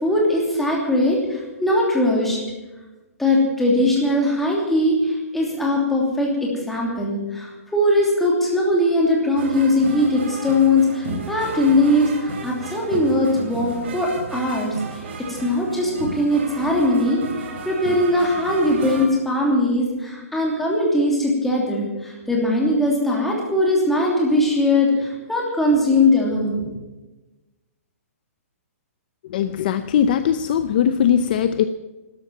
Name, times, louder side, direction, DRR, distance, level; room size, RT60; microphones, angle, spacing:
voice 1, 0.0-2.4 3.2-14.7 15.3-17.2 17.6-26.6, left 1 dB, ahead, -3 dB, 3.0 m, -20 dB
sound 1, 9.3-19.1, right 3 dB, 45° right, 3.3 m, -33 dB
voice 2, 29.3-31.6, left 9 dB, 35° left, 11 dB, 0.6 m, -20 dB
13.0 x 11.5 x 9.2 m, 1.1 s
hypercardioid pair, 170°, 8 cm